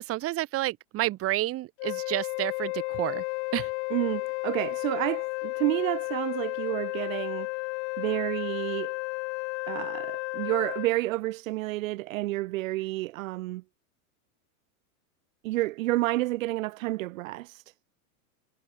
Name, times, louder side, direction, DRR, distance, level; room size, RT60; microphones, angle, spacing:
voice 1, 0.0-3.2 3.5-3.7, right 16 dB, 30° right, 4.9 m, -30 dB
Wind instrument woodwind instrument, 1.8-10.9, left 29 dB, 50° left, 4.5 m, -33 dB
voice 2, 3.9-7.5 8.0-9.0 9.7-13.6 15.4-17.6, right 18 dB, 60° right, 1.6 m, -30 dB
supercardioid pair, 160°, 45 cm